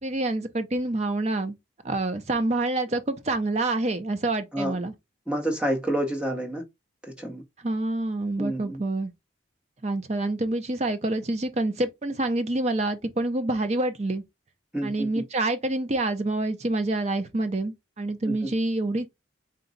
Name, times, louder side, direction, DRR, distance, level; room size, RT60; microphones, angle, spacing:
voice 1, 0.0-1.6 1.8-4.9 7.6-9.1 9.8-14.2 14.8-19.1, right 2 dB, 35° right, 0.5 m, -27 dB
voice 2, 5.3-6.6 7.0-7.4 8.4-8.8 14.7-15.1 18.3-18.4, right 1 dB, 5° right, 0.8 m, -28 dB
3.9 x 2.2 x 3.9 m
head